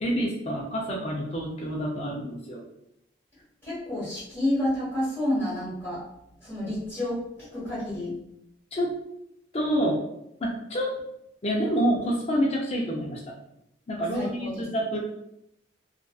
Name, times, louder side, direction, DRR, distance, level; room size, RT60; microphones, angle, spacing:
voice 1, 0.0-2.6 8.7-9.0 9.5-10.0 10.4-10.9 11.4-13.2 13.9-15.0, equal, 30° left, -3 dB, 0.4 m, -27 dB
voice 2, 3.6-6.0 6.4-8.2 14.1-14.6, left 1 dB, 10° left, -11 dB, 1.5 m, -29 dB
2.5 x 2.4 x 2.3 m, 0.79 s
head